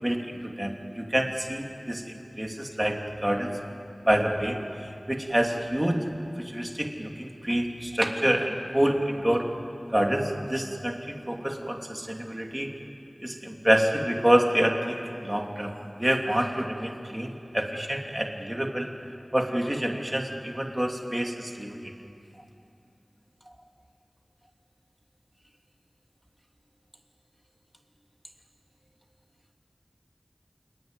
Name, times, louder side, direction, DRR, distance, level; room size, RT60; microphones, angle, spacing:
voice 1, 0.0-3.5 4.1-4.6 5.1-6.0 6.4-9.5 9.9-12.7 13.2-18.9 19.3-21.9, right 1 dB, 15° right, 2 dB, 3.1 m, -27 dB
28.5 x 20.5 x 9.3 m, 2.6 s
wide cardioid pair, 55°, 0 cm